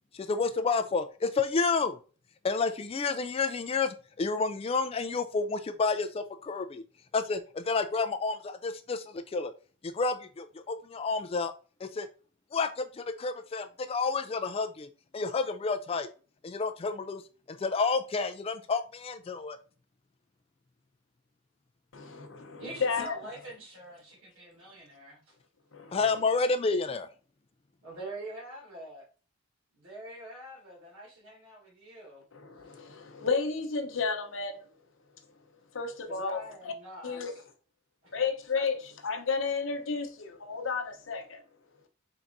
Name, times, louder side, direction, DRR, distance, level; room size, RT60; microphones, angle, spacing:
voice 1, 0.1-2.0 2.4-6.8 7.1-9.5 9.8-11.5 11.8-12.1 12.5-14.9 15.1-16.1 16.4-17.2 17.5-19.6 25.9-27.1, left 4 dB, 25° left, 0.3 m, -30 dB
voice 2, 21.9-23.2 25.7-26.0 32.3-34.6 35.7-36.7 37.0-37.4 38.1-41.4, left 5 dB, 60° left, 0.8 m, -32 dB
voice 3, 22.6-25.3 27.8-29.0 29.8-32.2 36.1-37.2 38.6-38.7, right 1 dB, 70° right, 2.4 m, -44 dB
4.5 x 3.9 x 2.5 m
head